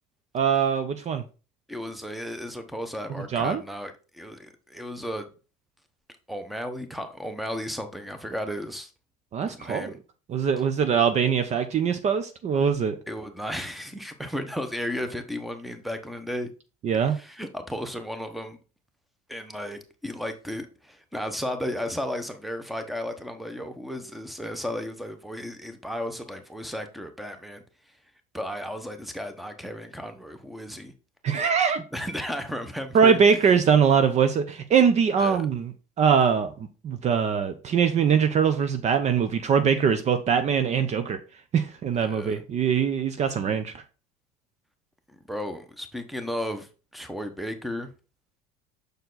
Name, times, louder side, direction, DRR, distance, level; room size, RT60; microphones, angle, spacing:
voice 1, 0.3-1.2 3.3-3.6 9.3-9.9 10.3-13.0 16.8-17.2 31.2-31.8 32.9-36.5 36.8-41.2 41.5-43.7, right 7 dB, 40° right, 0.7 m, -22 dB
voice 2, 1.7-5.3 6.3-8.9 9.4-10.0 13.1-16.5 17.0-18.6 19.3-27.6 28.3-30.9 31.9-33.2 35.2-35.4 42.0-42.4 45.3-47.9, equal, ahead, 1.1 m, -34 dB
6.7 x 4.5 x 4.0 m
supercardioid pair, 100°, 18 cm